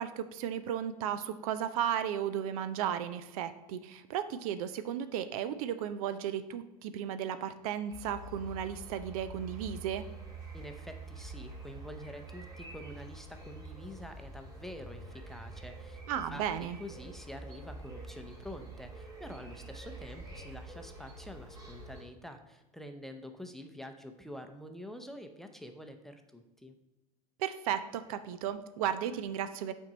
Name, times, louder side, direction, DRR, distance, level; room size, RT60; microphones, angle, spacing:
voice 1, 0.0-10.0 16.1-16.8 27.4-29.7, right 9 dB, 65° right, 12 dB, 0.5 m, -34 dB
sound 1, 7.9-22.0, right 2 dB, 20° right, 2.4 m, -47 dB
voice 2, 10.5-26.7, left 1 dB, ahead, 6 dB, 0.7 m, -47 dB
5.9 x 4.5 x 5.1 m, 1.0 s
hypercardioid pair, 90°, 20 cm